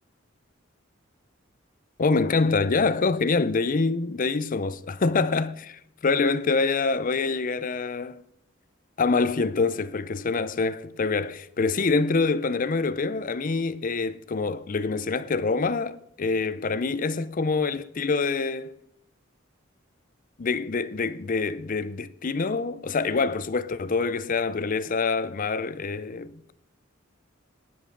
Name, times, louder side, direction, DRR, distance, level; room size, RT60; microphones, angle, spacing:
voice 1, 2.0-8.2 9.0-18.7 20.4-26.5, left 4 dB, 45° left, 0.5 m, -25 dB
16.0 x 10.5 x 3.8 m
head